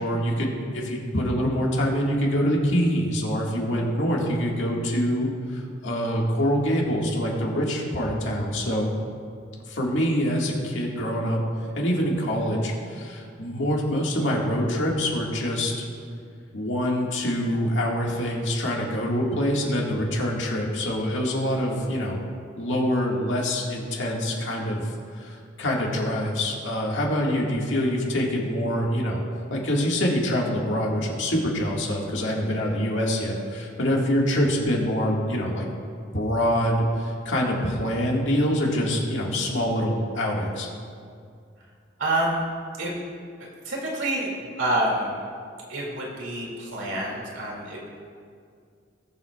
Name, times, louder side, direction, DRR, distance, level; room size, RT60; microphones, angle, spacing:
voice 1, 0.0-8.9 9.7-11.4 11.7-15.7 16.5-22.2 22.6-29.2 29.5-35.7 36.1-40.7, equal, 80° left, -2 dB, 1.8 m, -25 dB
voice 2, 42.0-42.4 42.8-42.9 43.4-45.2 45.7-47.8, right 1 dB, 90° right, -3 dB, 2.5 m, -27 dB
20.0 x 7.4 x 2.4 m, 2.3 s
head